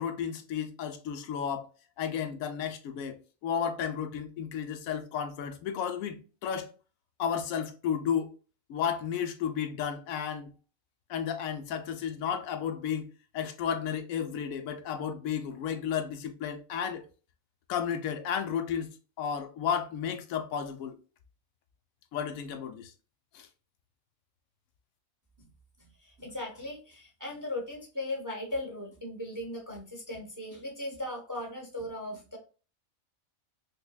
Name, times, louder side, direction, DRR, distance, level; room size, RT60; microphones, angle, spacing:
voice 1, 0.0-1.7 2.0-3.2 3.4-6.7 7.2-8.3 8.7-10.5 11.1-13.1 13.3-17.0 17.7-18.9 19.2-21.0 22.1-22.9 23.3-23.5, left 8 dB, 85° left, 1.0 m, -33 dB
voice 2, 26.0-32.4, left 1 dB, 20° right, 0.6 m, -38 dB
5.2 x 2.2 x 2.3 m
omnidirectional pair, 1.4 m